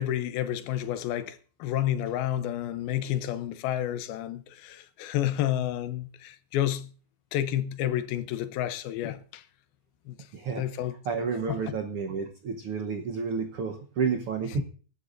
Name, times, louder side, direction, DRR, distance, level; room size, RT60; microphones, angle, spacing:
voice 1, 0.0-6.9 7.3-9.4 10.1-10.2 10.6-10.9 11.5-11.8, left 12 dB, 90° left, 2.8 m, -30 dB
voice 2, 10.3-10.6 11.0-14.6, right 5 dB, 80° right, 1.2 m, -30 dB
24.0 x 11.5 x 2.6 m
omnidirectional pair, 4.2 m